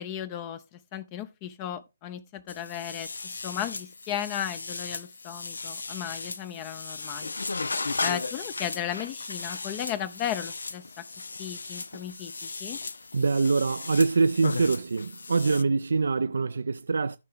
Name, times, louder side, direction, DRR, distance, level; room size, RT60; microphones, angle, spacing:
voice 1, 0.0-7.3 8.0-11.0 11.4-12.8, left 10 dB, 30° left, 0.6 m, -35 dB
sound 1, 2.5-15.6, left 3 dB, 75° left, 0.6 m, -36 dB
voice 2, 13.1-17.2, right 4 dB, 70° right, 0.4 m, -24 dB
14.0 x 5.6 x 3.6 m
figure-of-eight pair, 140°, 0 cm